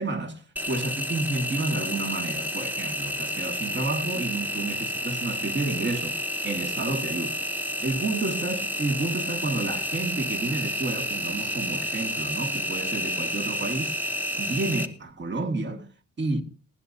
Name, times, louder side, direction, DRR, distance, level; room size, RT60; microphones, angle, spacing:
voice 1, 0.0-7.4 7.8-14.0 14.4-15.9 16.2-16.4, right 3 dB, 35° right, 2.0 m, -30 dB
Engine, 0.6-14.9, left 1 dB, 5° right, 1.2 m, -30 dB
19.5 x 16.5 x 2.7 m
cardioid pair, 90°, 30 cm